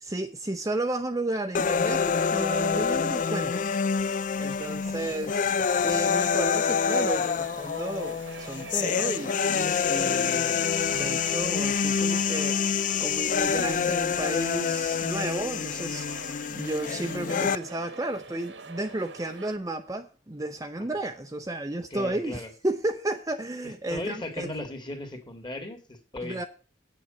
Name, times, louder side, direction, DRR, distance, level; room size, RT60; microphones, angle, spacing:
voice 1, 0.0-3.5 4.4-5.4 5.8-24.5 26.2-26.4, right 1 dB, 20° right, 0.7 m, -33 dB
sound 1, 1.6-17.6, left 6 dB, 45° left, 0.4 m, -27 dB
voice 2, 4.5-4.9 5.7-5.8 20.9-21.0 21.9-22.5 23.6-26.4, left 2 dB, 25° left, 2.3 m, -37 dB
sound 2, 5.8-19.6, right 4 dB, 80° right, 1.4 m, -45 dB
8.8 x 7.0 x 7.6 m
head